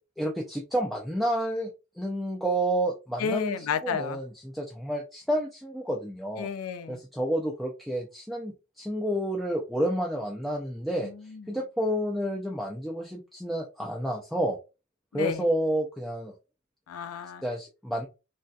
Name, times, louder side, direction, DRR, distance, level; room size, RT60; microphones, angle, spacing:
voice 1, 0.2-1.7 2.0-6.5 6.9-11.1 11.5-14.6 15.1-16.3 17.4-18.1, right 1 dB, ahead, 0.4 m, -30 dB
voice 2, 3.2-4.2 6.4-7.0 11.0-11.6 15.1-15.4 16.9-17.4, left 6 dB, 85° left, 0.4 m, -32 dB
3.3 x 2.6 x 2.3 m
head